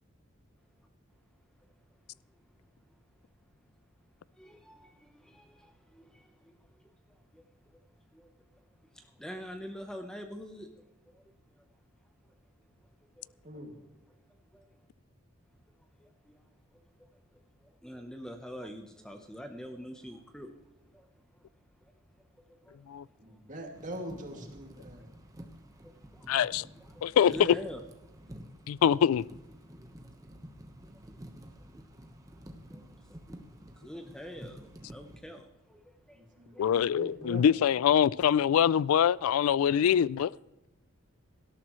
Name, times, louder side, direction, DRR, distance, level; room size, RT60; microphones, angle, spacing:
voice 1, 4.3-7.8 8.1-8.3 8.8-10.7 11.1-11.2 11.5-11.6 12.2-12.3 13.2-13.3 14.5-14.7 15.8-16.4 16.7-17.1 17.6-21.1 21.4-21.5 21.8-21.9 22.5-22.8 24.4-24.5 25.4-25.5 25.8-26.3 26.6-27.8 29.7-29.9 31.1-31.2 31.8-31.9 32.3-32.4 32.7-37.2, equal, 5° left, 5 dB, 0.8 m, -47 dB
voice 2, 23.2-25.1 36.1-37.5, right 1 dB, 35° right, 2 dB, 2.4 m, -43 dB
sound 1, 23.7-35.2, equal, 15° right, 1.1 m, -50 dB
voice 3, 26.3-26.7 27.0-27.6 28.7-29.2 36.6-40.3, left 8 dB, 85° left, 22 dB, 0.3 m, -24 dB
18.0 x 12.5 x 3.1 m, 0.96 s
head